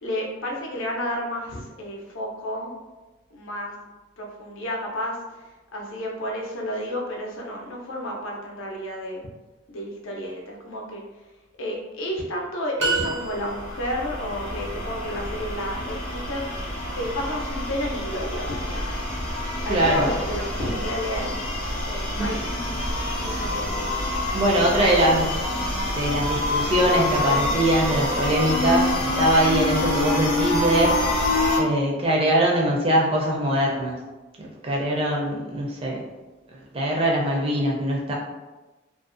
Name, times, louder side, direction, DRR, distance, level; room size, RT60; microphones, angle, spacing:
voice 1, 0.0-2.7 3.3-3.7 4.2-5.2 5.7-9.3 9.7-11.0 11.6-18.9 19.6-21.4 21.9-22.7 23.1-24.0, equal, 75° left, 0 dB, 0.5 m, -31 dB
sound 1, 12.8-13.9, right 3 dB, 75° right, 0.6 m, -27 dB
sound 2, 12.9-31.6, left 1 dB, 30° left, 0.5 m, -27 dB
voice 2, 19.7-20.1 22.2-22.3 24.3-25.4 25.9-30.9 31.6-33.9 34.4-36.0 36.5-38.1, right 1 dB, 30° right, -2 dB, 0.4 m, -22 dB
2.4 x 2.1 x 2.5 m, 1.2 s
head